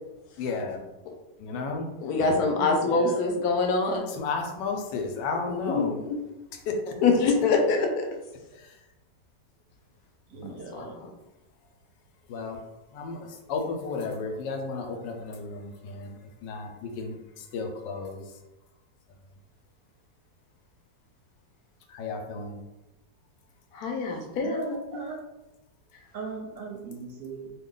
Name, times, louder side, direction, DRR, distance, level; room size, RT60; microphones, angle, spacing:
voice 1, 0.4-0.8 1.4-1.9 4.1-6.0 6.7-6.9 10.4-10.8 12.3-12.6 12.9-13.2 13.5-18.2 21.9-22.6, left 4 dB, 85° left, 3 dB, 1.2 m, -33 dB
voice 2, 2.0-4.1 5.5-6.2 7.0-8.0 10.5-11.1 23.7-25.2, left 3 dB, 70° left, 2 dB, 1.0 m, -25 dB
voice 3, 2.6-3.1 10.3-11.0 24.4-25.2 26.1-27.5, right 4 dB, 65° right, 1 dB, 0.8 m, -38 dB
3.0 x 2.3 x 3.7 m, 0.99 s
omnidirectional pair, 1.9 m